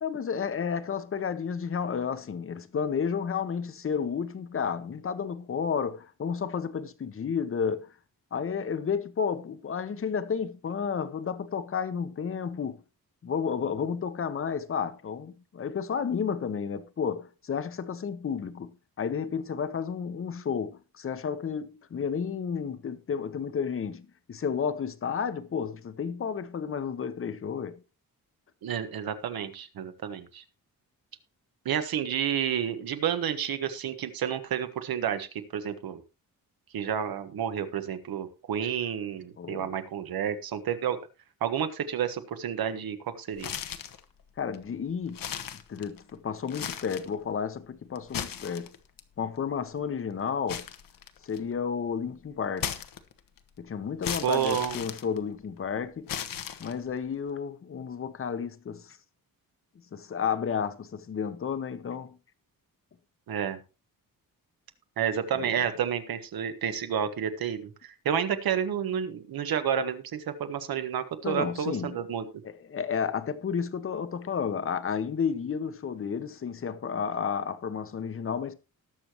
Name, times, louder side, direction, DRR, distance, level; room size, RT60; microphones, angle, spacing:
voice 1, 0.0-7.9 8.3-12.8 13.2-27.8 39.4-39.7 44.4-45.3 45.7-48.7 49.2-50.7 51.2-52.7 53.6-56.1 56.6-59.0 59.9-62.2 65.3-65.5 71.2-72.0 72.4-78.5, left 6 dB, 40° left, 0.9 m, -32 dB
voice 2, 28.6-30.4 31.6-35.3 35.5-36.0 36.7-41.0 41.4-43.5 54.2-54.8 63.3-63.6 65.0-72.2, right 8 dB, 85° right, 1.5 m, -30 dB
sound 1, 43.4-44.0 44.5-44.6 45.1-46.1 46.5-47.1 48.0-49.0 50.5-51.5 52.6-53.4 54.0-55.6 56.1-57.0, left 9 dB, 70° left, 1.1 m, -36 dB
19.5 x 6.8 x 3.0 m
wide cardioid pair, 165°, 35 cm